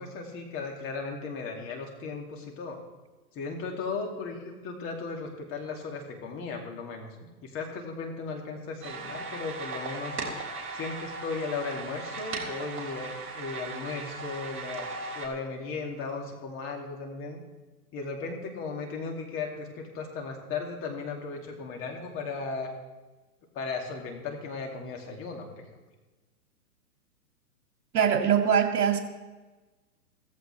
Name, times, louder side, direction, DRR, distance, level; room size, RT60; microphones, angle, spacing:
voice 1, 0.0-2.8 3.3-7.1 7.4-10.2 10.7-17.4 17.9-22.7 23.5-25.6, left 4 dB, 25° left, 1 dB, 2.4 m, -36 dB
sound 1, 8.8-15.3, right 3 dB, 25° right, 3.6 m, -37 dB
voice 2, 27.9-29.0, right 8 dB, 70° right, 4 dB, 2.4 m, -22 dB
16.0 x 15.0 x 3.3 m, 1.2 s
hypercardioid pair, 140°, 48 cm